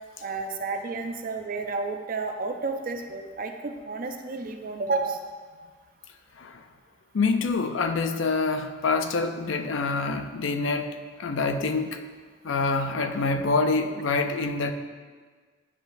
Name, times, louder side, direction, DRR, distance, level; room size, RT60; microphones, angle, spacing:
voice 1, 0.2-5.2, right 3 dB, 45° right, 6 dB, 0.5 m, -31 dB
voice 2, 7.1-10.9 11.2-12.0 12.4-14.7, left 3 dB, 75° left, 8 dB, 0.5 m, -26 dB
9.5 x 4.5 x 2.6 m, 1.5 s
head